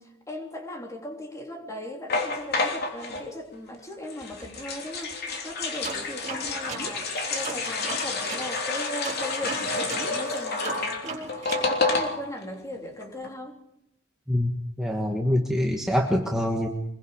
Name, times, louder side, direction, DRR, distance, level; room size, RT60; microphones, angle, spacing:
voice 1, 0.0-13.6, left 1 dB, 15° left, 2 dB, 3.3 m, -38 dB
sound 1, 2.1-3.2 4.1-12.4 12.7-12.8 13.0-13.3, left 3 dB, 50° left, 3.1 m, -29 dB
sound 2, 5.8-8.5 9.0-11.7, right 4 dB, 35° right, 4.6 m, -37 dB
voice 2, 14.8-16.7, left 1 dB, 5° right, 0 dB, 1.6 m, -24 dB
25.0 x 22.0 x 5.1 m, 0.84 s
head